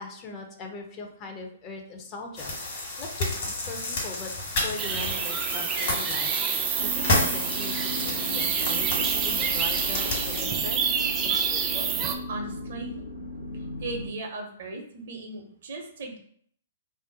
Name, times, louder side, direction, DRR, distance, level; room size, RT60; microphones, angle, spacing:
voice 1, 0.0-4.3 4.6-10.9, left 3 dB, 30° left, 2 dB, 0.5 m, -40 dB
sound 1, 2.4-10.4, left 2 dB, 50° left, 1.3 m, -31 dB
sound 2, 4.8-12.1, right 7 dB, 25° right, 0.3 m, -28 dB
sound 3, 6.8-14.1, left 1 dB, 75° left, 0.9 m, -37 dB
voice 2, 12.0-13.0 13.5-16.2, right 2 dB, 55° right, 3 dB, 0.7 m, -38 dB
2.5 x 2.0 x 3.8 m, 0.62 s
figure-of-eight pair, 120°, 0 cm